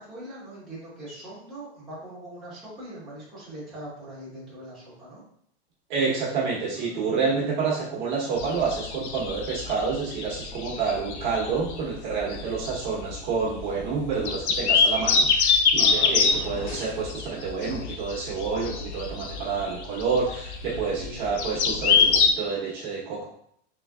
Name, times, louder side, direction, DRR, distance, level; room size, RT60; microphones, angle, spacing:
voice 1, 0.0-5.2 6.8-7.1 15.7-16.1 20.7-21.2, right 1 dB, ahead, -13 dB, 1.4 m, -41 dB
voice 2, 5.9-23.3, right 5 dB, 45° right, -5 dB, 1.1 m, -28 dB
sound 1, 8.4-22.3, left 5 dB, 90° left, 0.7 m, -25 dB
sound 2, 16.1-17.1, equal, 20° left, 0.7 m, -40 dB
3.8 x 3.3 x 2.4 m, 0.68 s
supercardioid pair, 170°, 33 cm